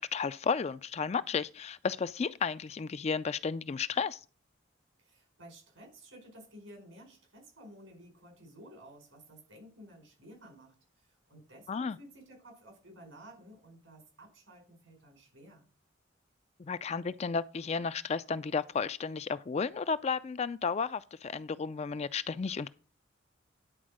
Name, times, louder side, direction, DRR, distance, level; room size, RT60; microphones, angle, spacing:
voice 1, 0.0-4.2 11.7-12.0 16.6-22.7, left 5 dB, 35° left, 0.4 m, -33 dB
voice 2, 5.0-15.6, right 1 dB, 85° right, 5.2 m, -54 dB
10.5 x 4.4 x 6.3 m
head